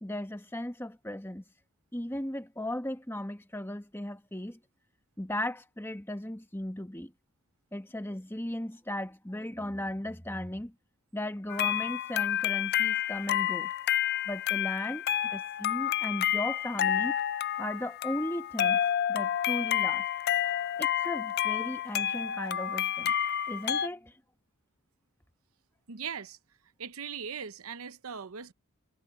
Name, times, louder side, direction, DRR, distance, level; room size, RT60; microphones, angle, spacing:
voice 1, 0.0-1.4 1.9-4.6 5.2-7.1 7.7-10.7 11.1-13.7 14.2-17.2 17.6-18.8 19.1-20.1 20.8-23.1 23.5-24.2, left 1 dB, 10° left, 1.5 m, -36 dB
sound 1, 11.5-23.9, left 10 dB, 45° left, 0.4 m, -29 dB
voice 2, 25.9-26.4 26.8-28.5, right 7 dB, 75° right, 0.8 m, -39 dB
head